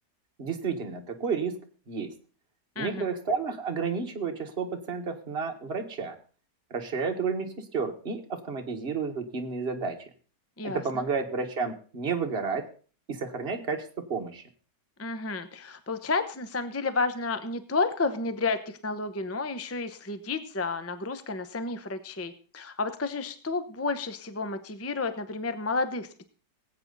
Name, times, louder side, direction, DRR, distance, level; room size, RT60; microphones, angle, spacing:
voice 1, 0.4-1.6 1.9-2.1 2.8-6.1 6.7-10.0 10.6-12.6 13.1-14.4, right 5 dB, 35° right, 3 dB, 1.7 m, -31 dB
voice 2, 10.6-11.0 15.0-26.3, left 3 dB, 20° left, 10 dB, 0.3 m, -31 dB
19.5 x 8.7 x 4.0 m, 0.39 s
omnidirectional pair, 1.9 m